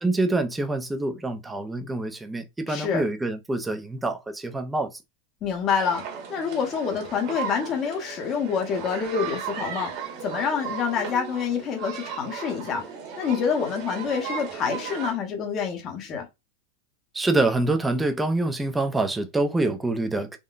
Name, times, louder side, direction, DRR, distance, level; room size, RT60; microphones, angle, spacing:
voice 1, 0.0-5.0 17.1-20.4, right 2 dB, 5° right, 0.4 m, -26 dB
voice 2, 2.7-3.0 5.4-6.0 6.3-9.9 10.2-12.8 13.2-16.3, left 6 dB, 30° left, 0.8 m, -27 dB
sound 1, 5.8-15.1, right 7 dB, 45° right, 1.1 m, -36 dB
3.7 x 2.2 x 2.3 m
supercardioid pair, 160°, 0 cm